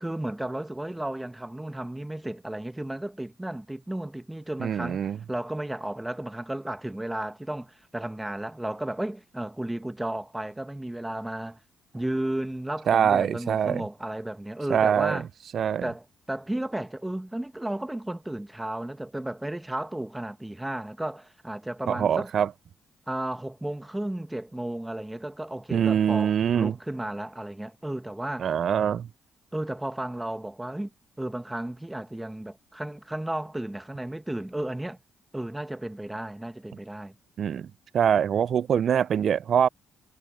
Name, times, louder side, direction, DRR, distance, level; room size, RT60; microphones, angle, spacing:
voice 1, 0.0-11.6 11.9-15.3 15.8-22.3 23.1-28.5 29.5-30.9 31.2-35.0 35.3-37.1, right 1 dB, 10° right, 1.3 m, -33 dB
voice 2, 4.6-5.2 12.9-13.8 14.7-15.2 15.5-15.9 21.9-22.5 25.7-26.8 28.4-29.1 37.4-37.7 37.9-39.7, right 8 dB, 60° right, 0.3 m, -23 dB
cardioid pair, 90°, 0 cm